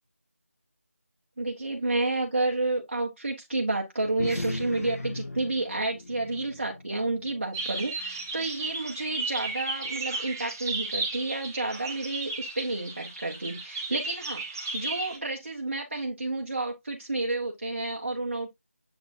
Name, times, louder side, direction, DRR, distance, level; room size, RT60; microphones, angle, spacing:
voice 1, 1.4-18.5, right 2 dB, 45° right, 1.3 m, -30 dB
sound 1, 4.0-8.8, left 1 dB, 75° left, 2.0 m, -38 dB
sound 2, 7.5-15.2, right 3 dB, 15° right, 0.8 m, -34 dB
7.9 x 4.8 x 2.7 m
figure-of-eight pair, 175°, 8 cm